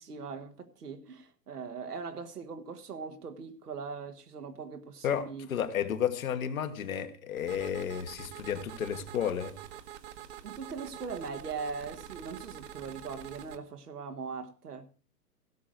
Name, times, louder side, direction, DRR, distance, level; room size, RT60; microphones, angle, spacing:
voice 1, 0.0-5.5 10.4-14.9, right 5 dB, 70° right, 1.6 m, -40 dB
voice 2, 5.0-9.5, left 8 dB, 55° left, 1.8 m, -32 dB
sound 1, 7.4-13.6, right 10 dB, 40° right, 1.3 m, -46 dB
16.5 x 6.3 x 6.3 m
figure-of-eight pair, 120°, 48 cm